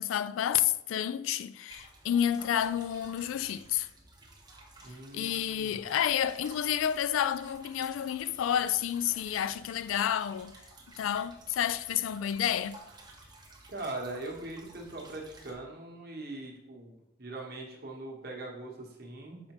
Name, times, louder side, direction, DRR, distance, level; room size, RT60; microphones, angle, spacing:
voice 1, 0.0-3.9 5.1-10.5 11.0-12.8, left 10 dB, 85° left, 0.3 m, -30 dB
sound 1, 1.7-15.5, right 2 dB, 20° right, 1.0 m, -54 dB
voice 2, 4.8-5.9 13.7-16.9 17.2-19.5, right 2 dB, 50° right, 1.2 m, -41 dB
6.7 x 4.9 x 3.0 m
head